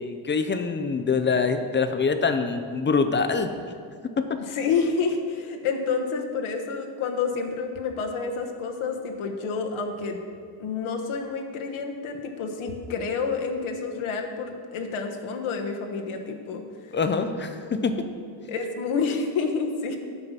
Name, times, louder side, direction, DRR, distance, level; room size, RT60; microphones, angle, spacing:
voice 1, 0.0-3.5 4.2-4.4 16.9-18.1, left 4 dB, 25° left, 8 dB, 0.5 m, -25 dB
voice 2, 4.5-10.2 10.6-16.6 18.5-20.0, left 5 dB, 85° left, 3 dB, 1.3 m, -29 dB
9.7 x 5.5 x 7.3 m, 2.1 s
cardioid pair, 160°, 47 cm